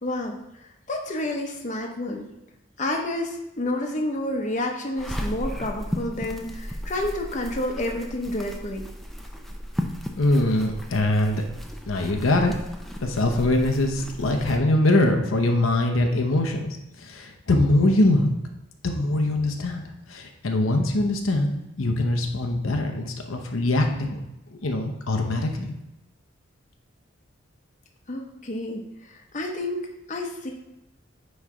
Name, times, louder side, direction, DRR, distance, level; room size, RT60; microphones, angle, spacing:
voice 1, 0.0-2.3 2.8-8.9 28.1-29.8 30.1-30.5, left 1 dB, 35° left, 2 dB, 0.7 m, -30 dB
sound 1, 5.0-14.6, equal, ahead, 0.4 m, -35 dB
voice 2, 10.2-11.4 11.9-12.5 13.0-18.3 18.8-19.8 20.1-24.2 24.5-25.7, left 1 dB, 90° left, 3 dB, 0.8 m, -23 dB
9.4 x 3.2 x 3.6 m, 0.90 s
head